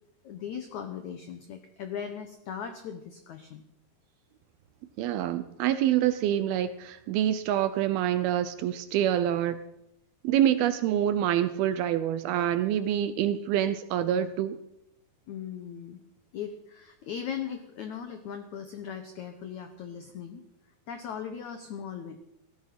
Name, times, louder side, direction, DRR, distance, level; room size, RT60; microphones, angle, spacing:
voice 1, 0.2-3.6 15.3-16.0 16.3-20.4 20.9-22.2, left 8 dB, 85° left, 8 dB, 1.6 m, -38 dB
voice 2, 5.0-9.6 10.2-14.6, right 11 dB, 80° right, 12 dB, 2.3 m, -26 dB
16.5 x 13.5 x 5.8 m, 0.83 s
omnidirectional pair, 4.9 m